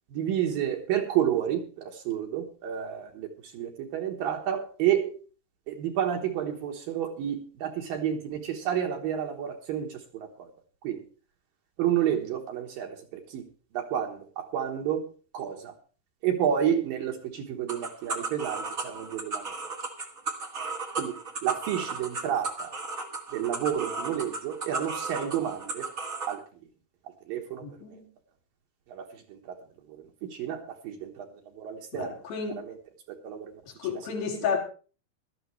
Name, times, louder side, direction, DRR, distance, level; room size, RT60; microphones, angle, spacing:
voice 1, 0.1-1.6 2.1-3.3 3.5-5.1 5.7-9.9 10.8-11.0 11.8-12.9 13.3-13.4 13.7-15.0 15.3-15.7 16.2-19.4 21.0-21.1 21.4-22.7 23.3-25.9 26.3-26.4 27.3-27.6 29.0-29.1 30.4-31.3 31.6-32.2 33.2-33.5, right 10 dB, 70° right, 2.7 m, -29 dB
sound 1, 17.7-26.3, right 3 dB, 50° right, 1.0 m, -35 dB
voice 2, 27.6-28.1 31.9-32.6 33.8-34.6, left 6 dB, 70° left, 4.4 m, -31 dB
18.0 x 12.5 x 3.2 m
omnidirectional pair, 4.6 m